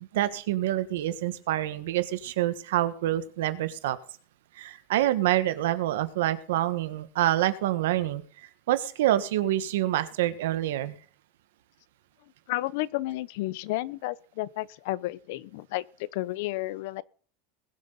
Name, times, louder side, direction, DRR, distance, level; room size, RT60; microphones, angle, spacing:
voice 1, 0.1-4.0 4.5-8.2 8.7-11.0, right 14 dB, 85° right, 1.5 m, -26 dB
voice 2, 12.5-17.0, left 18 dB, 55° left, 0.6 m, -32 dB
21.0 x 7.6 x 4.0 m
supercardioid pair, 175°, 0 cm